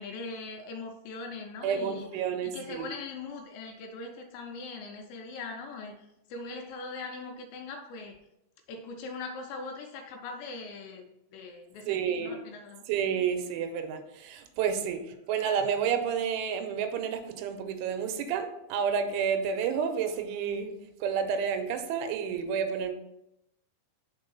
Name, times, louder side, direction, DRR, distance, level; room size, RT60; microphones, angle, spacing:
voice 1, 0.0-2.1 2.4-8.2 8.7-12.9, left 3 dB, 80° left, 2.7 m, -41 dB
voice 2, 1.6-2.9 11.9-12.4 12.9-20.8 21.0-22.9, right 7 dB, 85° right, 3.1 m, -30 dB
6.2 x 4.4 x 5.3 m
omnidirectional pair, 5.4 m